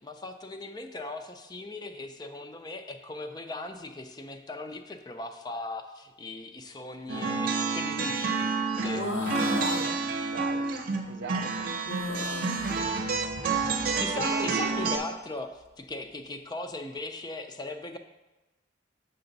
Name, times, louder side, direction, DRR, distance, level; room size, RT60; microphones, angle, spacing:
voice 1, 0.0-8.5 8.8-9.1 13.8-15.5 15.8-18.0, left 2 dB, 20° left, 7 dB, 0.4 m, -38 dB
sound 1, 7.1-15.0, right 4 dB, 50° right, 0.7 m, -29 dB
sound 2, 8.9-9.9 11.9-12.8 14.3-15.0, left 1 dB, 75° left, 0.9 m, -34 dB
voice 2, 9.5-10.0 10.3-10.7 11.1-11.7 14.3-14.9, right 5 dB, 75° right, 11 dB, 0.4 m, -37 dB
6.8 x 6.1 x 3.9 m, 1.1 s
head